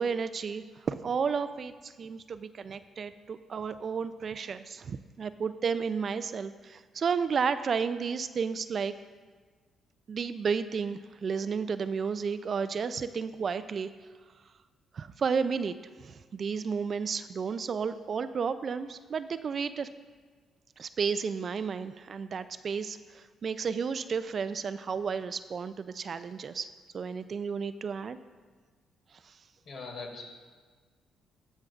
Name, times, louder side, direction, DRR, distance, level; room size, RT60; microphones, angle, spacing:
voice 1, 0.0-8.9 10.1-13.9 14.9-19.9 20.8-26.7 26.9-28.2, right 6 dB, 50° right, 12 dB, 0.3 m, -32 dB
voice 2, 29.6-30.2, left 4 dB, 65° left, 0 dB, 2.1 m, -40 dB
19.0 x 6.4 x 2.4 m, 1.5 s
cardioid pair, 90°, 0 cm